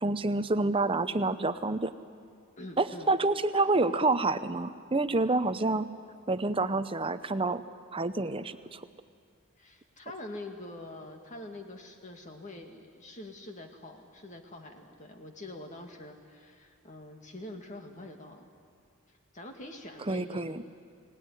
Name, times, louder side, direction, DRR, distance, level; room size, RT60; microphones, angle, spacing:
voice 1, 0.0-1.9 2.8-5.9 6.3-7.6 7.9-8.8 20.1-20.6, right 2 dB, 25° right, 11 dB, 0.7 m, -28 dB
voice 2, 2.6-3.1 9.6-18.5 19.3-20.5, left 1 dB, 35° left, 4 dB, 2.1 m, -45 dB
24.5 x 18.0 x 9.9 m, 2.3 s
head